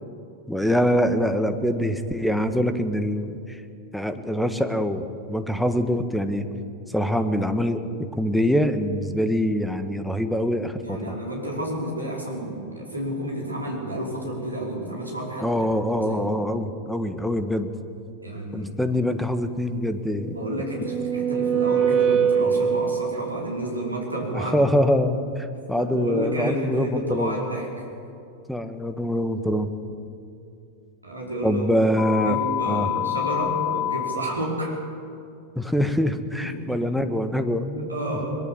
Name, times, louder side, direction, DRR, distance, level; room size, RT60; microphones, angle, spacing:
voice 1, 0.5-3.6 3.9-6.5 6.9-7.8 8.1-11.2 15.4-17.7 18.5-20.6 24.3-27.4 28.5-29.7 31.4-32.4 32.7-32.9 35.5-38.3, equal, ahead, 9 dB, 1.6 m, -24 dB
voice 2, 10.8-15.5 15.9-16.3 18.2-18.7 20.3-24.7 25.8-27.8 31.0-34.8 36.4-36.9 37.8-38.4, right 1 dB, 85° right, -3 dB, 5.2 m, -30 dB
sound 1, 20.3-23.4, right 7 dB, 30° right, 0.6 m, -23 dB
sound 2, 32.0-34.0, left 12 dB, 35° left, 4.3 m, -26 dB
22.0 x 22.0 x 7.6 m, 2.5 s
figure-of-eight pair, 90°, 0 cm